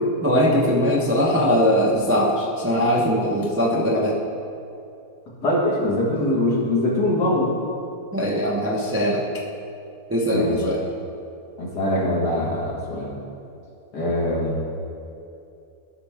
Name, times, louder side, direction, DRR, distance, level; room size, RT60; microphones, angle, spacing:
voice 1, 0.2-4.2 8.1-9.2 10.1-10.9, equal, 15° right, -4 dB, 0.5 m, -21 dB
voice 2, 5.4-7.6 10.3-10.6 11.6-13.1 13.9-14.6, left 1 dB, 85° left, -4 dB, 2.3 m, -22 dB
13.5 x 5.7 x 3.5 m, 2.6 s
omnidirectional pair, 1.7 m